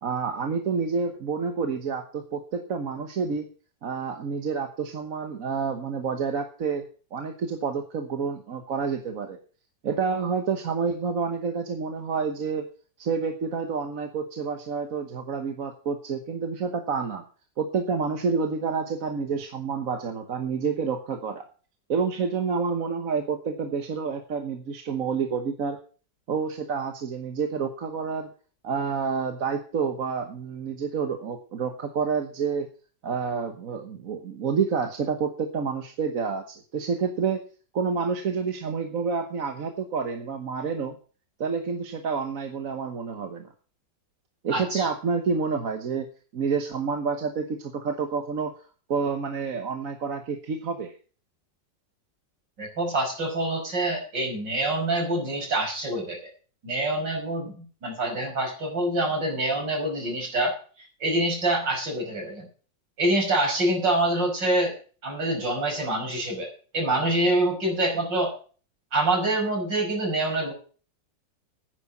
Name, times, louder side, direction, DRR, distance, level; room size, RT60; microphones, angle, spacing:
voice 1, 0.0-3.5 3.8-9.4 9.8-12.6 13.0-17.2 17.6-21.5 21.9-25.8 26.3-28.3 28.6-32.7 33.0-37.4 37.7-41.0 41.4-43.5 44.4-46.1 46.3-48.5 48.9-50.9, right 5 dB, 50° right, 6 dB, 1.5 m, -28 dB
voice 2, 44.5-44.9 52.6-56.2 56.6-60.6 61.0-62.5 63.0-64.7 65.0-66.5 66.7-68.4 68.9-70.5, right 1 dB, 75° right, 1 dB, 6.1 m, -26 dB
9.9 x 9.8 x 7.3 m, 0.40 s
omnidirectional pair, 1.9 m